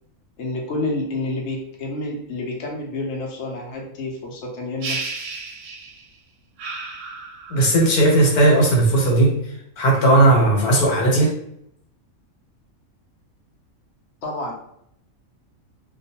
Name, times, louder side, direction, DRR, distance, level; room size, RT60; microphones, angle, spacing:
voice 1, 0.4-5.2 14.2-14.5, left 2 dB, 60° left, -1 dB, 0.9 m, -29 dB
sound 1, 4.8-6.1 6.6-7.8, right 4 dB, 65° right, 0.9 m, -33 dB
voice 2, 7.5-11.3, right 2 dB, 85° left, -2 dB, 1.3 m, -16 dB
2.5 x 2.3 x 2.7 m, 0.71 s
omnidirectional pair, 1.5 m